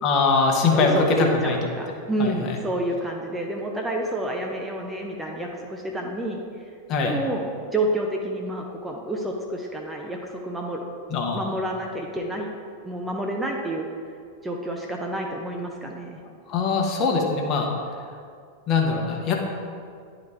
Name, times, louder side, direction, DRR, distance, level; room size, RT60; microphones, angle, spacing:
voice 1, 0.0-1.6 2.2-2.6 6.9-7.2 11.1-11.5 16.5-17.7 18.7-19.4, left 4 dB, 35° left, 1 dB, 1.0 m, -22 dB
voice 2, 0.6-6.4 7.0-10.8 11.3-12.5 12.8-13.9 14.4-16.2, right 1 dB, 10° right, 0 dB, 0.7 m, -29 dB
10.5 x 4.0 x 3.3 m, 2.2 s
figure-of-eight pair, 90°, 0 cm